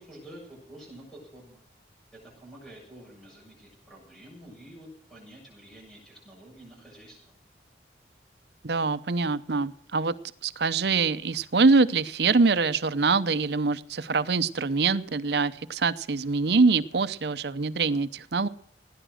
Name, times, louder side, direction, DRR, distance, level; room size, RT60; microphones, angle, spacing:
voice 1, 0.0-1.6 2.1-7.2, right 1 dB, ahead, -3 dB, 7.2 m, -48 dB
voice 2, 8.6-10.1 10.4-18.5, right 4 dB, 70° right, 14 dB, 0.7 m, -24 dB
17.5 x 10.0 x 6.3 m, 0.64 s
head